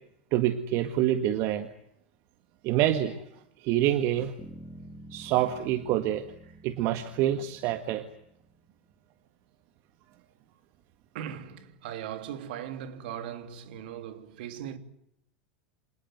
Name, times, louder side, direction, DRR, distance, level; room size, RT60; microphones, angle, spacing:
voice 1, 0.3-1.7 2.6-3.2 3.6-4.3 5.1-6.3 6.6-8.0, right 12 dB, 50° right, 1.8 m, -26 dB
Bass guitar, 4.4-8.7, right 1 dB, 5° right, 3.8 m, -49 dB
voice 2, 11.1-14.8, right 10 dB, 70° right, 3.1 m, -39 dB
27.0 x 18.5 x 9.3 m
hypercardioid pair, 90°, 6 cm